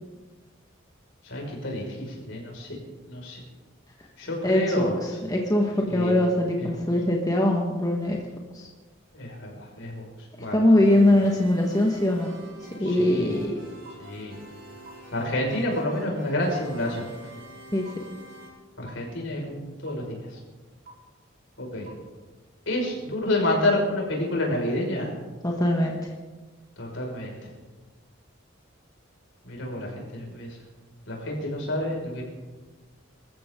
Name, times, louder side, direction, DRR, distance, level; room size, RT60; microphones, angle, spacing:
voice 1, 1.2-2.8 3.1-3.4 4.2-4.9 5.9-6.2 6.6-6.8 9.1-10.0 10.4-10.6 10.9-11.0 12.8-13.3 14.0-14.4 15.1-17.0 18.8-20.4 21.6-21.9 22.7-25.1 26.8-27.5 29.4-30.6 31.1-32.2, left 1 dB, 70° left, -1 dB, 5.7 m, -29 dB
voice 2, 4.4-8.2 8.5-8.7 10.5-12.3 12.8-13.5 17.7-17.8 25.4-26.1, left 1 dB, 20° left, 0 dB, 1.5 m, -22 dB
sound 1, 10.8-18.5, right 1 dB, 80° right, 6.1 m, -46 dB
sound 2, 12.9-13.0 13.8-13.9 14.8-14.9 15.9-16.0 16.9-17.0 17.9-18.0 18.9-19.0 19.9-20.0 20.9-21.0 21.9-22.0, right 5 dB, 45° right, 4.3 m, -45 dB
25.0 x 14.0 x 3.8 m, 1.3 s
head